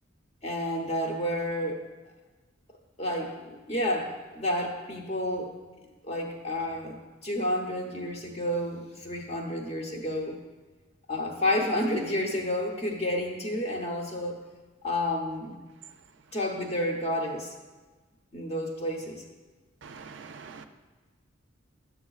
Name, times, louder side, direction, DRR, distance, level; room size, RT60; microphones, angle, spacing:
voice 1, 0.4-1.8 3.0-5.5 6.0-10.4 11.1-14.4 14.8-15.6 16.3-17.5 18.3-19.2, left 1 dB, 30° left, 1 dB, 0.9 m, -30 dB
voice 2, 19.8-20.6, right 5 dB, 65° right, 7 dB, 0.5 m, -44 dB
10.5 x 7.0 x 2.4 m, 1.3 s
head